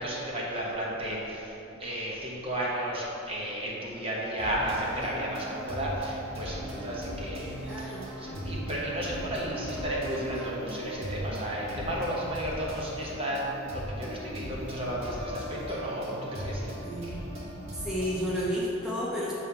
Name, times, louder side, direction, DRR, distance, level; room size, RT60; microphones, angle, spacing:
voice 1, 0.0-1.5 1.8-16.7, right 1 dB, 30° right, -5 dB, 1.1 m, -33 dB
sound 1, 4.4-18.5, equal, 75° right, 1.5 m, -38 dB
voice 2, 7.6-8.1 16.8-17.1 17.8-19.3, equal, 5° right, -9 dB, 0.9 m, -31 dB
7.7 x 3.3 x 5.8 m, 3.0 s
head